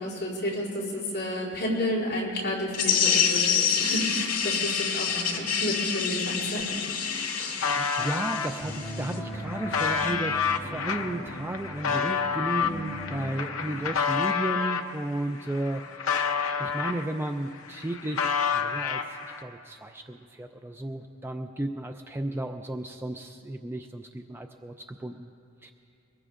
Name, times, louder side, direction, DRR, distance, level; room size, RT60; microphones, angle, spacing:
voice 1, 0.0-7.3, equal, 50° left, -7 dB, 4.6 m, -31 dB
sound 1, 2.7-9.2, left 7 dB, 85° left, 2.1 m, -27 dB
sound 2, 6.9-8.5 9.1-14.9 15.4-17.3 17.6-19.4, left 6 dB, 65° left, 0.8 m, -29 dB
voice 2, 7.3-16.1 16.6-25.3 25.6-25.7, right 1 dB, 10° right, 5 dB, 0.3 m, -34 dB
sound 3, 8.0-13.3, equal, 20° left, 3.5 m, -39 dB
23.0 x 20.0 x 2.5 m, 2.7 s
head